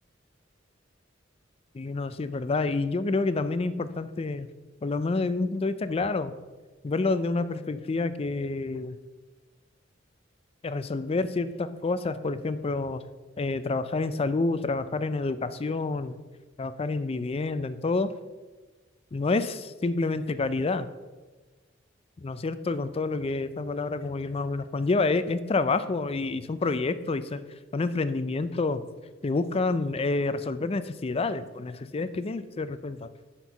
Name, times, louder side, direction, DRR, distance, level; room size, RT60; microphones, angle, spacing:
voice 1, 1.7-4.5 4.8-6.3 6.8-9.0 10.6-13.0 13.4-16.2 16.6-18.1 19.1-20.9 22.2-27.4 27.7-28.8 29.2-33.1, left 3 dB, 30° left, 13 dB, 0.4 m, -28 dB
10.5 x 4.5 x 5.7 m, 1.3 s
head